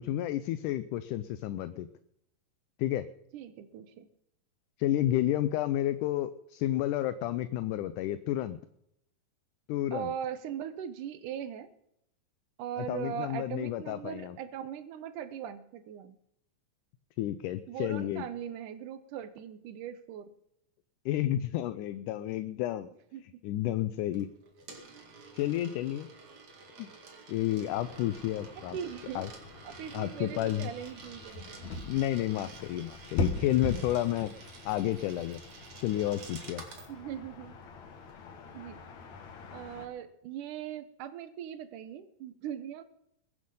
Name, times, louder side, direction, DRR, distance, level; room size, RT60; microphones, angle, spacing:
voice 1, 0.0-1.9 2.8-3.0 4.8-8.6 9.7-10.1 12.8-14.4 17.2-18.2 21.1-22.9 23.4-24.3 25.3-26.1 26.8-26.9 27.3-28.8 29.2-29.3 29.9-30.7 31.9-34.3 34.7-35.4 35.8-36.6, left 13 dB, 80° left, 12 dB, 2.0 m, -31 dB
voice 2, 3.3-4.1 9.9-11.7 12.6-16.2 17.7-20.3 23.1-23.2 28.7-29.3 29.7-31.7 36.9-37.6 38.5-38.8 39.5-42.8, right 9 dB, 70° right, 13 dB, 2.4 m, -40 dB
Coin (dropping), 24.1-36.9, right 4 dB, 55° right, 3.3 m, -50 dB
sound 1, 27.6-39.9, left 3 dB, 60° left, 2.8 m, -41 dB
21.5 x 8.6 x 5.5 m, 0.77 s
omnidirectional pair, 3.9 m